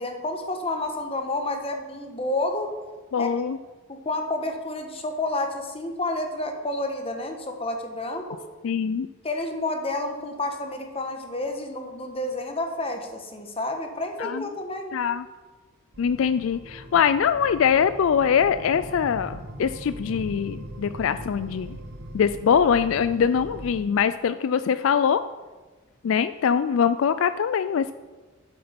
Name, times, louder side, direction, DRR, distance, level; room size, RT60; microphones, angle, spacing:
voice 1, 0.0-2.7 3.2-3.3 3.9-8.4 9.2-15.0, left 2 dB, 30° left, 5 dB, 1.3 m, -30 dB
voice 2, 3.1-3.6 8.6-9.1 14.2-14.5 14.9-15.2 16.0-21.8 22.1-25.2 26.0-27.9, left 7 dB, 70° left, 12 dB, 0.3 m, -23 dB
sound 1, 15.9-23.8, right 1 dB, 55° right, 1.0 m, -40 dB
12.0 x 7.9 x 5.2 m, 1.3 s
head